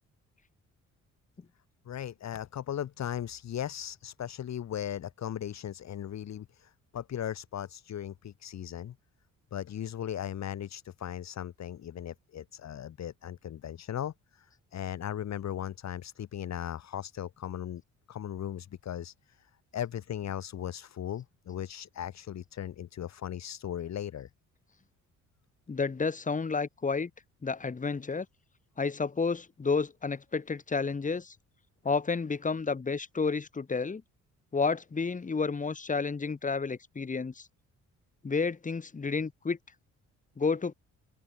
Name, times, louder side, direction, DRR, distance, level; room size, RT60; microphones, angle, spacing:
voice 1, 1.9-8.9 9.5-14.5 14.7-17.8 18.1-19.1 19.7-24.3, left 10 dB, 60° left, 2.6 m, -37 dB
voice 2, 25.7-27.1 27.4-28.3 28.8-31.3 31.8-34.0 34.5-37.5 38.2-39.6 40.4-40.7, left 4 dB, 25° left, 1.8 m, -30 dB
open air
cardioid pair, 90°, 30 cm